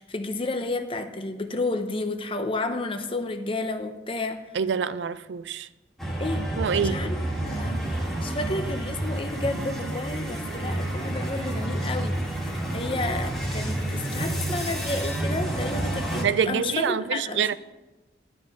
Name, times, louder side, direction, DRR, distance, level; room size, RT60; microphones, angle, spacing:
voice 1, 0.0-4.4 6.2-6.4 6.7-17.5, left 2 dB, 30° left, 0.7 m, -31 dB
voice 2, 4.5-5.7 6.6-7.0 16.2-17.5, right 7 dB, 75° right, 0.4 m, -26 dB
sound 1, 6.0-16.2, right 1 dB, ahead, 1.7 m, -29 dB
11.5 x 4.9 x 6.4 m
head